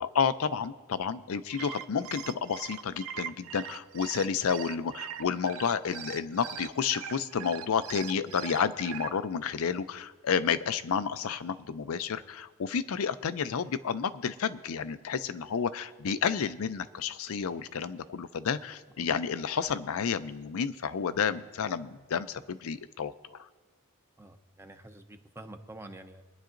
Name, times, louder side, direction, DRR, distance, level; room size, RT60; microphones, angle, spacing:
voice 1, 0.0-23.4, left 6 dB, 65° left, 12 dB, 0.5 m, -31 dB
sound 1, 1.4-9.1, right 8 dB, 65° right, 0.4 m, -41 dB
voice 2, 24.2-26.2, right 1 dB, 10° right, 6 dB, 0.6 m, -47 dB
24.0 x 10.0 x 2.6 m, 1.4 s
head